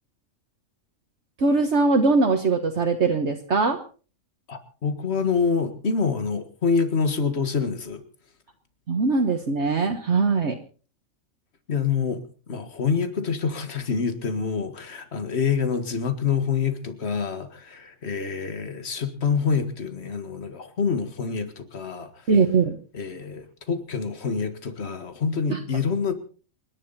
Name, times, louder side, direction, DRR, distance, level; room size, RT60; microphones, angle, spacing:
voice 1, 1.4-3.8 8.9-10.6 22.3-22.7 25.5-25.6, right 4 dB, 60° right, 4 dB, 1.6 m, -21 dB
voice 2, 4.5-8.0 11.7-22.3 22.9-26.1, left 5 dB, 55° left, 9 dB, 2.0 m, -26 dB
29.0 x 11.0 x 4.1 m, 0.38 s
omnidirectional pair, 1.3 m